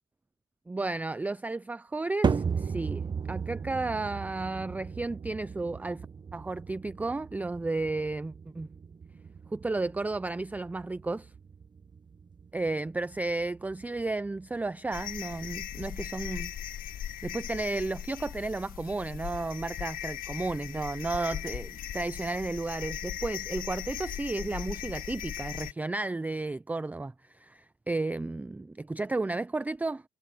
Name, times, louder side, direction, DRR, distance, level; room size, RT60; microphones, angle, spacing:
voice 1, 0.7-3.0 3.3-6.1 6.3-8.7 9.5-11.3 12.5-16.5 17.2-30.0, right 2 dB, 10° right, 0.4 m, -33 dB
sound 1, 2.2-18.7, right 6 dB, 25° right, 1.1 m, -37 dB
sound 2, 14.9-25.7, left 11 dB, 55° left, 1.5 m, -39 dB
cardioid pair, 110°, 17 cm